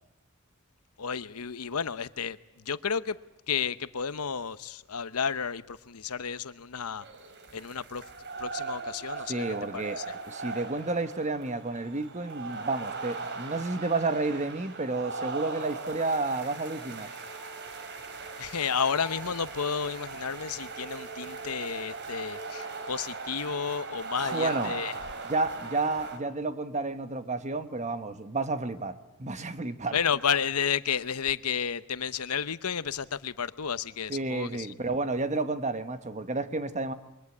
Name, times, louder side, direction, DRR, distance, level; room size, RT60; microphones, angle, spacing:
voice 1, 1.0-3.2 3.5-7.1 7.5-8.0 8.4-9.4 9.7-10.0 18.4-24.9 29.9-34.7, left 7 dB, 85° left, 15 dB, 0.9 m, -32 dB
sound 1, 7.0-26.2, right 4 dB, 55° right, 2.9 m, -39 dB
voice 2, 9.3-10.0 10.3-17.1 24.2-24.7 25.3-30.0 34.1-36.9, right 3 dB, 30° right, 10 dB, 1.3 m, -31 dB
sound 2, 16.0-23.0, right 1 dB, 5° left, 5.4 m, -49 dB
28.0 x 23.0 x 8.6 m, 0.92 s
head